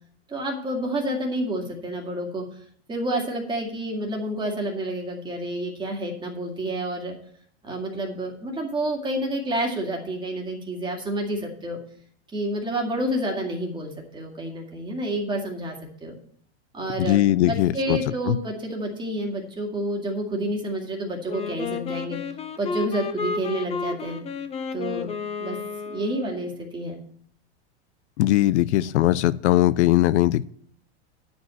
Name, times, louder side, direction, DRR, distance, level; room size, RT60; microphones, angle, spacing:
voice 1, 0.3-2.5 2.9-7.2 7.6-11.8 12.3-16.1 16.7-22.2 22.6-24.2 24.7-25.1 25.4-25.6 25.8-27.0, right 1 dB, 15° right, 1 dB, 2.1 m, -29 dB
voice 2, 17.0-18.0 18.3-18.4 28.2-30.4, left 15 dB, 80° left, 17 dB, 0.6 m, -20 dB
Wind instrument woodwind instrument, 21.3-26.5, left 5 dB, 20° left, 0.7 m, -32 dB
9.3 x 5.3 x 7.6 m, 0.63 s
supercardioid pair, 135°, 34 cm